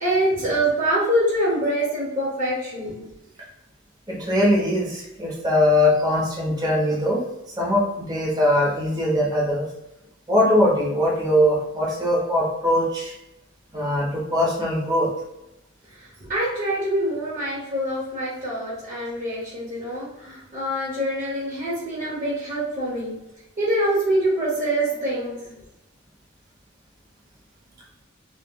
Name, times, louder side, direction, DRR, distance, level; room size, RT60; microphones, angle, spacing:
voice 1, 0.0-3.0 16.0-23.1 23.6-25.5, right 1 dB, 40° right, -7 dB, 0.8 m, -25 dB
voice 2, 4.1-7.2 7.6-9.6 10.3-13.1 13.7-15.1, left 1 dB, 20° right, -4 dB, 0.6 m, -21 dB
2.2 x 2.1 x 3.6 m, 0.89 s
head